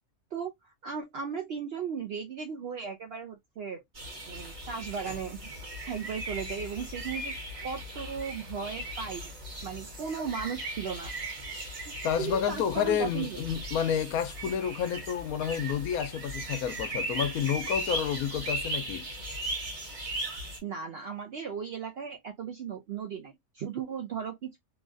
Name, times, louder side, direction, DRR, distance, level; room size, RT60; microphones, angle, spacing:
voice 1, 0.3-3.8 4.3-5.5 5.8-7.3 7.6-9.3 9.6-11.1 11.9-13.4 20.6-24.6, right 6 dB, 70° right, 0.6 m, -36 dB
sound 1, 3.9-20.6, right 1 dB, 35° right, 0.9 m, -38 dB
voice 2, 12.0-19.1, left 8 dB, 80° left, 1.0 m, -30 dB
3.1 x 2.3 x 2.5 m
omnidirectional pair, 1.5 m